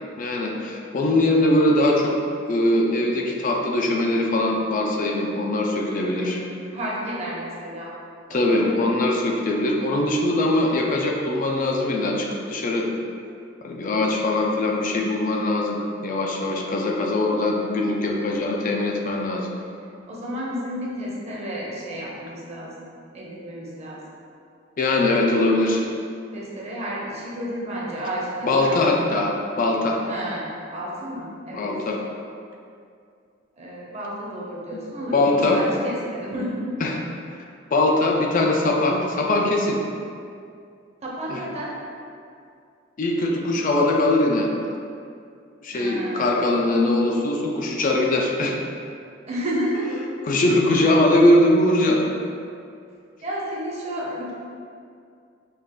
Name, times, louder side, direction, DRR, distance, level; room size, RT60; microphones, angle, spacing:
voice 1, 0.2-2.2 2.5-6.4 8.3-12.9 13.6-19.5 24.8-25.8 28.4-30.0 31.5-32.0 34.7-34.8 35.1-35.6 36.8-37.0 37.7-39.8 41.3-41.4 43.0-44.5 45.6-48.6 50.2-52.0, left 1 dB, 45° left, 0 dB, 0.4 m, -21 dB
voice 2, 5.8-7.9 8.3-8.7 20.1-22.8 23.1-24.0 26.3-28.9 30.1-31.7 33.6-36.7 41.0-41.8 45.7-46.4 49.3-50.0 50.4-50.5 53.2-54.3, equal, 35° right, -5 dB, 0.8 m, -31 dB
5.4 x 2.4 x 3.7 m, 2.4 s
head